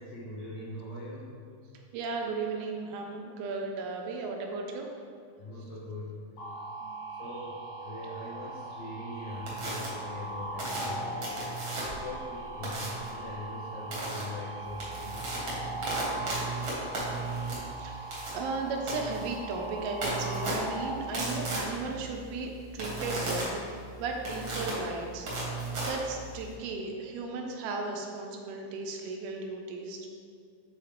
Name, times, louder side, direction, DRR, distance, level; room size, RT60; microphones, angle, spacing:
voice 1, 0.0-1.4 5.4-6.2 7.2-11.4 11.8-15.3, left 1 dB, 80° left, -6 dB, 1.7 m, -41 dB
voice 2, 1.9-4.9 6.8-6.9 17.8-23.6 24.0-25.3 25.9-30.1, right 3 dB, 80° right, 2 dB, 2.4 m, -35 dB
sound 1, 6.4-20.9, right 2 dB, 65° left, 2.4 m, -40 dB
sound 2, 9.5-9.9 10.6-12.1 12.6-13.1 13.9-14.2 14.6-26.5, right 2 dB, 60° right, 1.3 m, -35 dB
8.5 x 3.8 x 3.3 m, 2.4 s
omnidirectional pair, 4.7 m